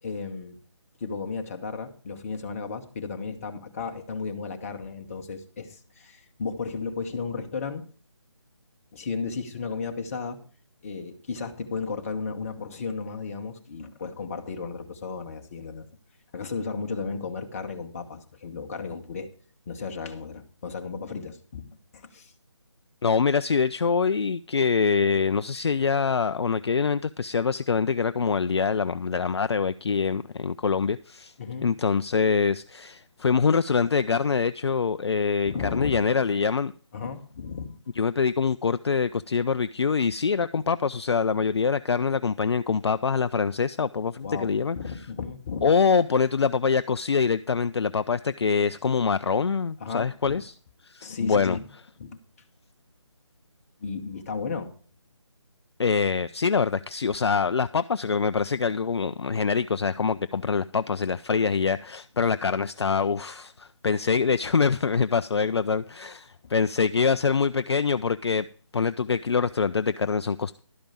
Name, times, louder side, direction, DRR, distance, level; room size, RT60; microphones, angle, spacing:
voice 1, 0.0-0.6 1.0-7.8 8.9-10.4 10.8-15.9 16.3-19.3 19.7-21.7 21.9-22.3 31.4-31.7 35.5-36.0 36.9-37.7 44.2-45.7 49.8-50.4 51.0-51.7 52.0-52.2 53.8-54.7, left 5 dB, 30° left, 1.1 m, -34 dB
voice 2, 23.0-31.3 31.6-36.7 38.0-44.8 45.6-50.5 50.8-51.6 55.8-68.5 68.7-70.6, left 5 dB, 60° left, 0.4 m, -24 dB
12.0 x 5.1 x 7.1 m
figure-of-eight pair, 155°, 15 cm